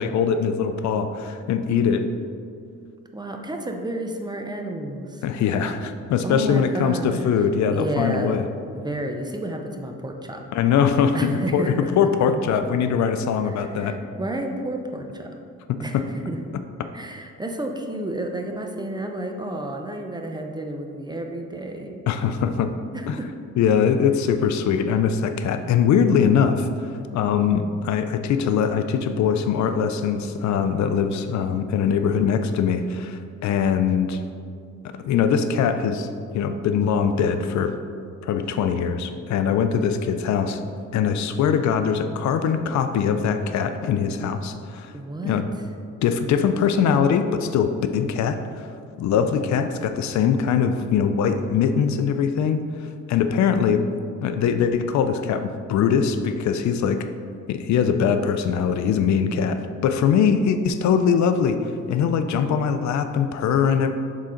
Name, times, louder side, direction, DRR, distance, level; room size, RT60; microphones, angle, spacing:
voice 1, 0.0-2.1 5.2-8.5 10.5-14.0 15.7-16.0 22.1-22.7 23.1-23.2 23.6-34.2 35.0-36.1 36.3-37.7 38.2-40.6 40.9-44.9 45.2-45.4 46.0-48.7 49.0-52.6 53.1-53.8 54.2-57.1 57.5-61.6 61.9-63.9, left 7 dB, 70° left, 9 dB, 0.5 m, -22 dB
voice 2, 3.1-5.2 6.2-7.3 7.7-8.5 8.7-10.4 11.1-11.9 13.4-15.3 15.8-16.4 16.9-22.0 22.9-23.3 44.9-45.4, right 1 dB, 15° right, 3 dB, 0.6 m, -31 dB
7.3 x 3.9 x 3.8 m, 2.3 s
cardioid pair, 90°, 30 cm